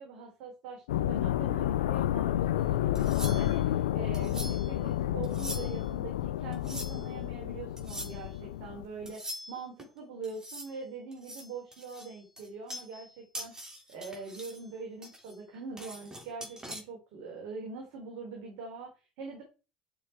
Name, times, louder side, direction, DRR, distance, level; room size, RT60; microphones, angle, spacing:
voice 1, 0.0-19.4, right 4 dB, 70° right, 1 dB, 4.4 m, -43 dB
sound 1, 0.9-9.1, left 12 dB, 85° left, 0.6 m, -30 dB
sound 2, 3.0-3.7 4.1-4.7 5.2-5.9 6.5-7.1 7.8-8.2 9.1-9.9 10.2-10.8 11.1-13.1 13.3-14.6 15.0-16.8, right 1 dB, 15° right, 3.4 m, -43 dB
11.5 x 6.7 x 4.7 m, 0.32 s
hypercardioid pair, 75°, 4 cm